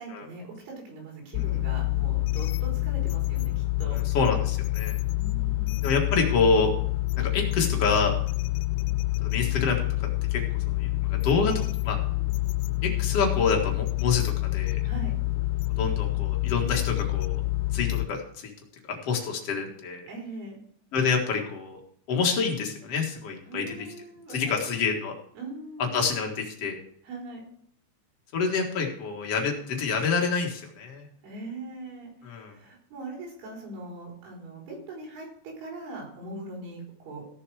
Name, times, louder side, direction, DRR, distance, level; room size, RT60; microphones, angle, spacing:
voice 1, 0.0-4.0 5.1-5.8 14.8-15.1 20.1-20.6 23.5-25.0 25.4-26.0 27.0-27.4 31.2-37.3, right 2 dB, 85° right, -2 dB, 6.8 m, -41 dB
sound 1, 1.3-18.1, left 19 dB, 85° left, 3.0 m, -27 dB
voice 2, 3.9-5.0 5.8-6.7 7.2-8.1 9.2-9.8 10.3-10.4 10.7-12.0 12.8-14.8 15.8-17.4 17.7-18.5 18.9-20.1 20.9-21.8 22.1-23.6 24.3-25.1 25.9-26.8 28.3-31.1 32.2-32.5, left 5 dB, 60° left, 2 dB, 1.6 m, -27 dB
15.5 x 7.0 x 4.8 m, 0.67 s
omnidirectional pair, 5.4 m